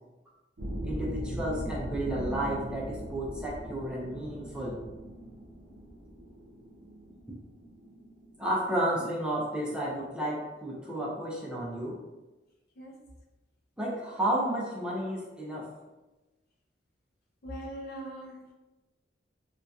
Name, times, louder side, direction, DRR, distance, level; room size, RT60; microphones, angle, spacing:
sound 1, 0.6-11.1, right 1 dB, 80° right, 0.6 m, -40 dB
voice 1, 0.8-4.8 8.4-12.0 13.8-15.7, right 1 dB, 5° right, -5 dB, 0.4 m, -32 dB
voice 2, 12.8-13.1 17.4-18.5, right 1 dB, 55° left, 0 dB, 0.5 m, -41 dB
2.6 x 2.3 x 2.3 m, 1.1 s
head